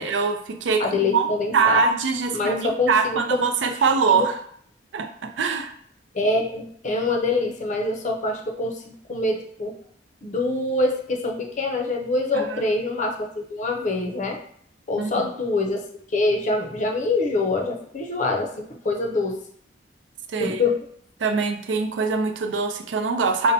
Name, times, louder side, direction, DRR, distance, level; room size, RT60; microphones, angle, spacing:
voice 1, 0.0-1.3 1.5-4.4 4.9-5.7 12.3-12.7 15.0-15.3 20.3-20.6 21.2-23.5, right 4 dB, 85° right, 6 dB, 0.4 m, -23 dB
voice 2, 0.8-1.8 2.3-3.4 4.1-4.3 6.1-9.8 10.2-14.4 14.9-19.4 20.4-20.8, left 2 dB, 45° left, 2 dB, 0.5 m, -25 dB
5.3 x 2.1 x 2.7 m, 0.63 s
head